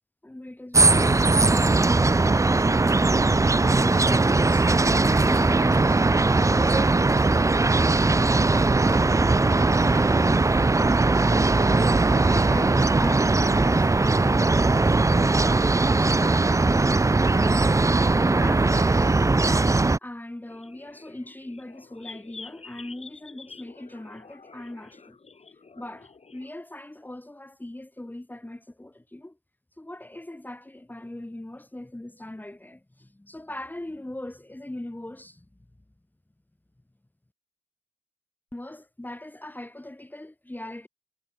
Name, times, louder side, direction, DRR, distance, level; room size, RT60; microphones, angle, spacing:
voice 1, 0.2-7.2 9.4-10.6 11.2-11.8 12.2-17.1 17.3-17.7 18.4-19.5 20.0-25.2 25.8-29.3 29.8-35.4 38.5-40.9, left 1 dB, 10° left, 4.5 m, -40 dB
sound 1, 0.7-20.0, right 3 dB, 15° right, 1.0 m, -20 dB
sound 2, 20.5-26.5, left 4 dB, 30° left, 5.4 m, -48 dB
cardioid pair, 90°, 20 cm